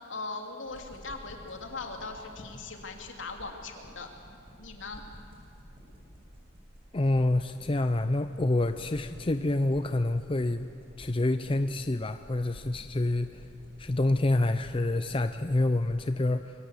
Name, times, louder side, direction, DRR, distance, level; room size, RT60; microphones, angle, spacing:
voice 1, 0.1-4.1 4.6-5.0, left 3 dB, 70° left, 3 dB, 3.1 m, -39 dB
sound 1, 0.6-16.0, equal, 30° right, 7.3 m, -51 dB
voice 2, 6.9-10.7 11.0-13.4 13.8-16.5, left 2 dB, 25° left, 9 dB, 0.6 m, -27 dB
27.0 x 22.5 x 8.4 m, 2.7 s
head